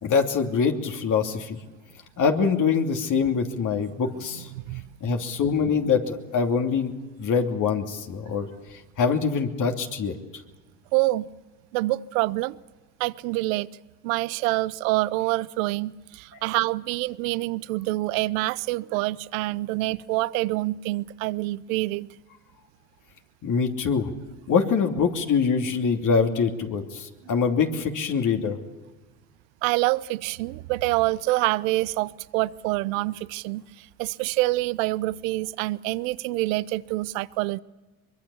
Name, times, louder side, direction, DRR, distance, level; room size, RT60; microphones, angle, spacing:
voice 1, 0.0-1.6 2.2-4.5 5.0-6.9 7.2-8.5 9.0-10.1 16.3-16.4 23.4-24.1 24.5-28.6, left 5 dB, 50° left, 3.0 m, -24 dB
voice 2, 4.5-5.2 10.9-11.3 11.7-12.6 13.0-13.7 14.0-22.1 29.6-37.6, right 19 dB, 80° right, 0.7 m, -26 dB
23.5 x 23.0 x 7.1 m
supercardioid pair, 75°, 39 cm